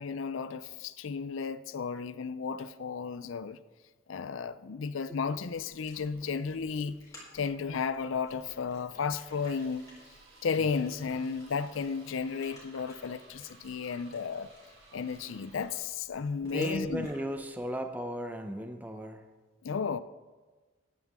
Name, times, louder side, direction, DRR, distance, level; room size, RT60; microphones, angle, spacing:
voice 1, 0.0-3.6 4.1-7.0 7.3-9.9 10.4-14.5 14.9-17.1 19.6-20.0, left 5 dB, 80° left, 0.5 m, -33 dB
sound 1, 5.4-17.7, left 1 dB, 15° left, 4.1 m, -57 dB
sound 2, 9.2-15.9, right 3 dB, 80° right, 3.5 m, -58 dB
voice 2, 16.4-19.3, equal, 10° right, 0.6 m, -36 dB
14.0 x 11.0 x 3.6 m
head